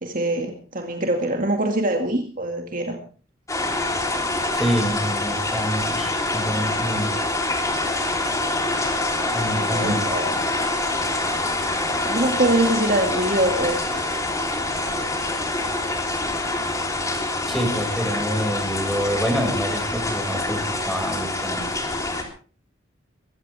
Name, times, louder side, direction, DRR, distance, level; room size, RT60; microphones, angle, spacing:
voice 1, 0.0-3.0 9.6-10.4 12.0-14.0, right 1 dB, 45° right, 3 dB, 2.2 m, -23 dB
sound 1, 3.5-22.2, left 2 dB, 15° left, 3.6 m, -25 dB
voice 2, 4.5-7.1 9.3-10.1 17.5-21.6, equal, ahead, 2 dB, 5.9 m, -27 dB
22.5 x 16.0 x 3.5 m, 0.40 s
head